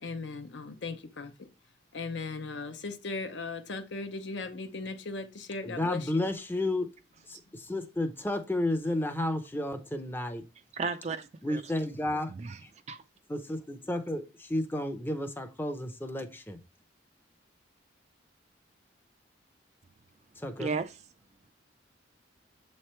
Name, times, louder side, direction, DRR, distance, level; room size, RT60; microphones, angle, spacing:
voice 1, 0.0-1.5 1.9-6.3, left 3 dB, 70° left, 0.7 m, -38 dB
voice 2, 5.6-6.9 7.3-10.4 11.4-12.3 12.6-12.7 13.3-16.6 20.4-20.7, left 1 dB, 10° left, 0.6 m, -32 dB
voice 3, 10.7-11.6 12.4-12.6 12.9-13.0 20.6-20.9, right 4 dB, 35° right, 0.4 m, -33 dB
7.4 x 3.2 x 4.3 m
head